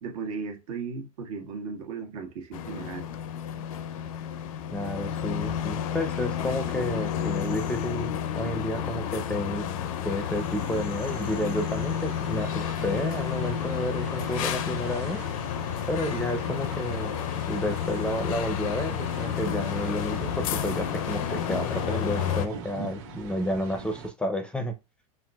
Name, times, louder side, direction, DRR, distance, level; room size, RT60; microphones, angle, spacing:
voice 1, 0.0-3.1, right 5 dB, 80° right, 1.5 m, -36 dB
sound 1, 2.5-22.5, left 9 dB, 70° left, 0.5 m, -31 dB
voice 2, 4.7-9.7 10.0-15.2 15.9-17.2 17.5-24.7, left 1 dB, 5° left, 0.5 m, -31 dB
sound 2, 10.1-24.1, right 3 dB, 55° right, 1.4 m, -42 dB
5.6 x 2.6 x 2.3 m
supercardioid pair, 135°, 18 cm